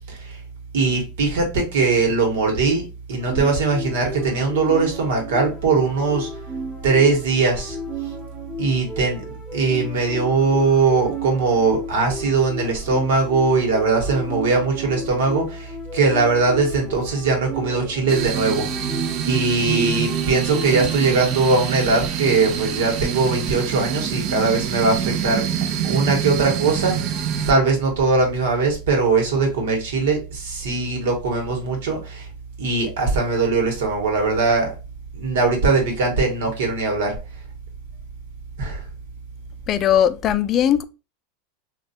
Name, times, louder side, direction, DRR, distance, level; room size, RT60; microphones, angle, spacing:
voice 1, 0.1-0.4 0.7-6.3 6.8-7.8 8.6-9.2 9.5-18.8 19.2-25.4 25.8-32.3 32.6-34.7 35.1-37.2 38.6-38.9, right 4 dB, 80° right, 1.3 m, -20 dB
Pixel Cave Echo Melody Loop, 3.2-21.3, equal, 5° right, 0.8 m, -33 dB
sound 1, 18.1-27.5, right 9 dB, 50° right, 0.5 m, -26 dB
voice 2, 39.7-40.8, left 10 dB, 35° left, 0.3 m, -19 dB
3.1 x 2.4 x 2.7 m
supercardioid pair, 125°, 0 cm